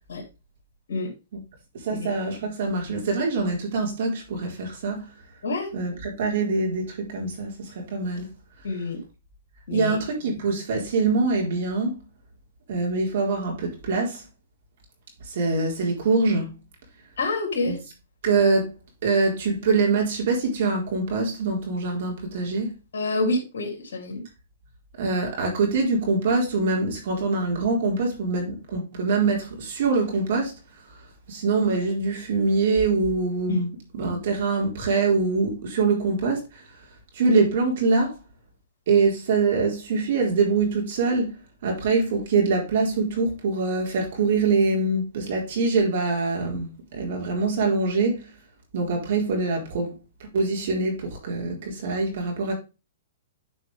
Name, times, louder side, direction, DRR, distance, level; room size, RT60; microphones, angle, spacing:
voice 1, 1.7-5.1 5.7-8.3 9.7-12.0 12.7-14.2 15.2-16.6 17.7-17.8 18.2-18.7 19.0-22.7 25.0-30.5 31.3-36.6 37.1-38.2 38.9-41.3 41.6-48.3 48.7-49.9 50.2-52.5, right 3 dB, 60° right, 4.2 m, -24 dB
voice 2, 5.4-5.7 8.6-9.0 9.7-9.9 17.2-17.8 22.9-24.2 33.5-33.6, left 2 dB, 70° left, 2.9 m, -27 dB
9.7 x 5.2 x 3.4 m
hypercardioid pair, 130°, 0 cm